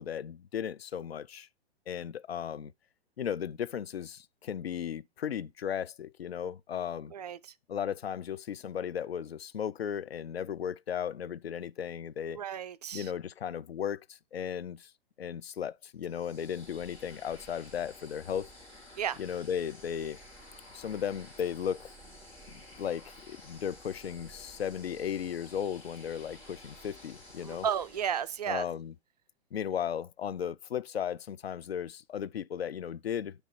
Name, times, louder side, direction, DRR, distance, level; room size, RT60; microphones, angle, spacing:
voice 1, 0.0-1.5 1.9-2.7 3.2-7.1 7.7-12.4 12.9-14.9 15.2-18.5 19.2-20.2 20.7-21.9 22.5-27.7 28.5-28.9 29.5-33.3, left 8 dB, 70° left, 0.5 m, -36 dB
voice 2, 12.3-13.1 19.0-19.2 27.4-28.7, right 8 dB, 40° right, 0.4 m, -33 dB
sound 1, 16.0-28.7, left 1 dB, 10° left, 2.7 m, -52 dB
10.0 x 3.4 x 5.7 m
figure-of-eight pair, 115°, 32 cm